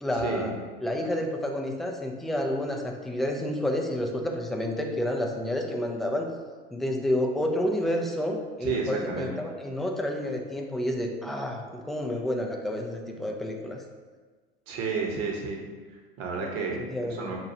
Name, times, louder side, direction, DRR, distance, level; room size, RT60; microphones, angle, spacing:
voice 1, 0.0-0.5 0.8-6.3 6.7-13.8 16.9-17.3, left 1 dB, ahead, 1 dB, 0.3 m, -29 dB
voice 2, 8.6-9.3 14.7-15.6 15.9-16.9 17.2-17.4, right 4 dB, 50° right, 0 dB, 1.0 m, -31 dB
5.7 x 2.3 x 2.7 m, 1.4 s
hypercardioid pair, 85°, 31 cm